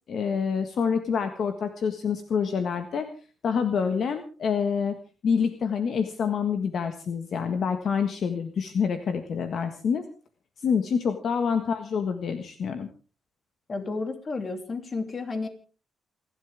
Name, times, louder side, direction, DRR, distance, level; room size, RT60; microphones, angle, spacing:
voice 1, 0.1-3.1 3.4-5.0 5.2-10.0 10.6-12.9, left 6 dB, 55° left, 7 dB, 1.6 m, -27 dB
voice 2, 13.7-15.5, left 3 dB, 35° left, 7 dB, 2.9 m, -32 dB
28.5 x 11.5 x 3.6 m, 0.38 s
cardioid pair, 130°, 0 cm